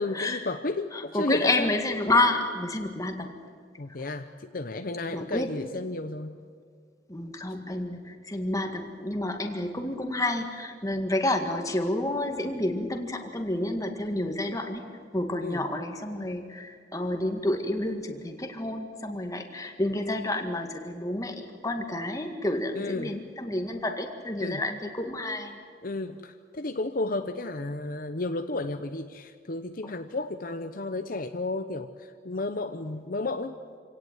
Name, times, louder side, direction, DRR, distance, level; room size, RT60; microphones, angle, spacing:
voice 1, 0.0-1.8 3.8-6.4 15.4-15.7 22.7-23.2 24.4-24.6 25.8-33.6, left 2 dB, 50° left, 8 dB, 0.9 m, -33 dB
voice 2, 0.9-3.4 5.1-5.5 7.1-14.8 15.1-25.6, left 1 dB, 20° left, 4 dB, 1.9 m, -29 dB
26.0 x 17.5 x 9.2 m, 2.1 s
head